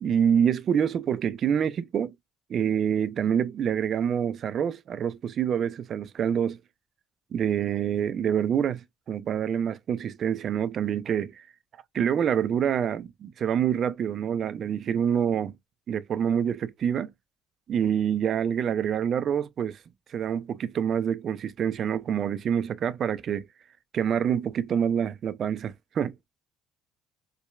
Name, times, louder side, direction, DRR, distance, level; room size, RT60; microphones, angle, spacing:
voice 1, 0.0-2.1 2.5-6.6 7.3-8.8 9.1-11.4 11.9-15.5 15.9-17.1 17.7-19.8 20.1-23.5 23.9-26.1, right 8 dB, 50° right, 0.4 m, -26 dB
4.5 x 2.2 x 2.3 m
hypercardioid pair, 60°, 0 cm